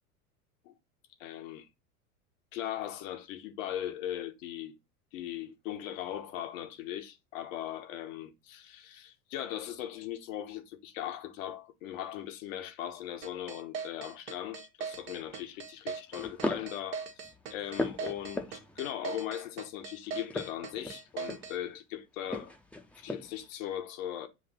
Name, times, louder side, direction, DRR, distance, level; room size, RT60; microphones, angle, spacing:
voice 1, 1.2-1.7 2.5-4.7 5.1-22.5 23.0-24.3, left 11 dB, 60° left, 1.3 m, -39 dB
sound 1, 13.2-21.6, right 6 dB, 65° right, 1.5 m, -40 dB
sound 2, 14.9-15.3 16.1-16.8 17.2-18.9 20.2-21.6 22.3-23.5, left 2 dB, 5° left, 0.8 m, -38 dB
7.7 x 2.7 x 5.6 m
hypercardioid pair, 90°, 44 cm